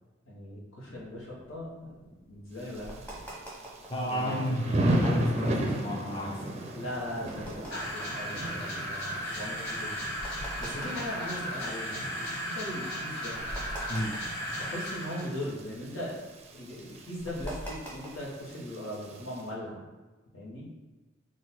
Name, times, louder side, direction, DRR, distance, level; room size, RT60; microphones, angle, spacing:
voice 1, 0.2-3.2 4.1-4.8 6.7-10.1 10.4-13.4 14.6-16.2 16.5-19.8 20.3-20.7, left 1 dB, 90° left, -4 dB, 1.2 m, -39 dB
sound 1, 0.9-4.1 4.5-5.1 5.5-12.2 12.7-12.8 13.0-15.2 15.4-18.5, equal, 10° left, 0.9 m, -44 dB
Thunder / Rain, 2.6-19.4, right 1 dB, 30° right, 0.4 m, -36 dB
voice 2, 3.9-6.4 13.9-14.1, equal, 25° left, -3 dB, 0.5 m, -30 dB
sound 2, 7.7-15.3, equal, 60° left, 1.0 m, -36 dB
3.8 x 2.5 x 4.2 m, 1.2 s
head